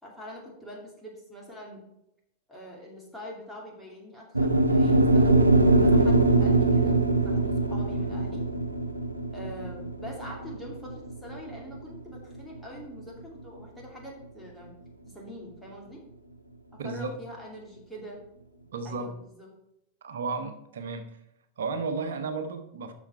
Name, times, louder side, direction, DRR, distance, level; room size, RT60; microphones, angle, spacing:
voice 1, 0.0-1.8 2.5-5.4 5.8-7.0 7.2-8.4 9.3-14.7 15.1-16.0 16.8-18.2 18.8-19.5, equal, ahead, -4 dB, 2.5 m, -44 dB
sound 1, 4.3-12.6, right 2 dB, 85° right, 0.6 m, -22 dB
voice 2, 16.8-17.2 18.7-19.1 20.0-21.2 21.6-22.9, right 4 dB, 65° right, 9 dB, 0.9 m, -33 dB
7.2 x 6.3 x 4.5 m, 0.81 s
figure-of-eight pair, 90°, 0 cm